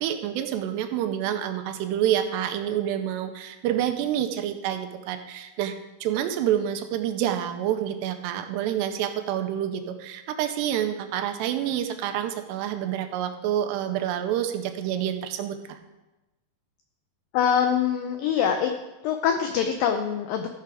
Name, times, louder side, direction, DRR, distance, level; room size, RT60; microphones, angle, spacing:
voice 1, 0.0-5.7 6.0-15.8, right 10 dB, 90° right, 7 dB, 2.8 m, -28 dB
voice 2, 17.3-18.7 19.0-20.5, left 8 dB, 90° left, 6 dB, 2.0 m, -24 dB
14.5 x 5.8 x 4.8 m, 1.0 s
omnidirectional pair, 4.8 m